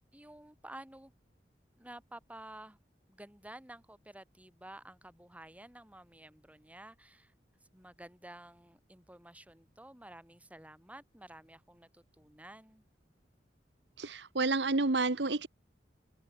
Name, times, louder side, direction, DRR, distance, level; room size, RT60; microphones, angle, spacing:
voice 1, 0.1-1.1 1.8-2.8 3.1-7.3 7.7-12.8, right 1 dB, 10° right, 4.6 m, -52 dB
voice 2, 14.0-15.5, right 3 dB, 70° right, 1.3 m, -30 dB
head